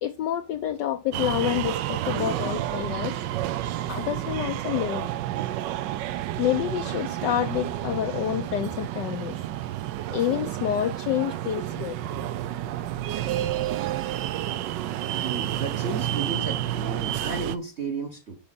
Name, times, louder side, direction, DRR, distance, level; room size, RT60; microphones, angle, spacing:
voice 1, 0.0-3.2 3.9-5.1 6.4-9.4 10.1-12.0, left 11 dB, 70° left, 1.1 m, -28 dB
sound 1, 1.1-17.6, right 13 dB, 70° right, 1.1 m, -30 dB
voice 2, 15.1-18.4, right 4 dB, 40° right, 1.1 m, -33 dB
9.8 x 5.0 x 4.1 m
omnidirectional pair, 2.3 m